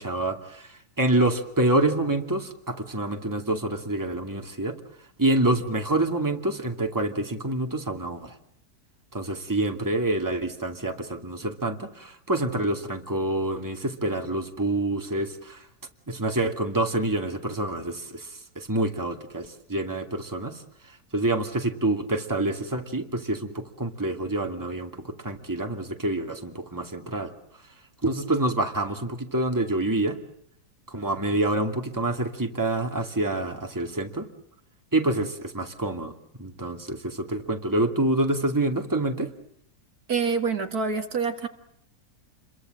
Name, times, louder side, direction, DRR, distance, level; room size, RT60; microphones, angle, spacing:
voice 1, 0.0-4.8 5.2-8.4 9.1-15.7 16.1-20.6 20.9-27.3 28.0-30.2 30.9-34.3 34.9-36.1 36.4-39.3, right 2 dB, 10° right, 4 dB, 2.5 m, -27 dB
voice 2, 40.1-41.5, right 5 dB, 65° right, 6 dB, 2.6 m, -26 dB
30.0 x 23.0 x 7.8 m, 0.70 s
omnidirectional pair, 1.7 m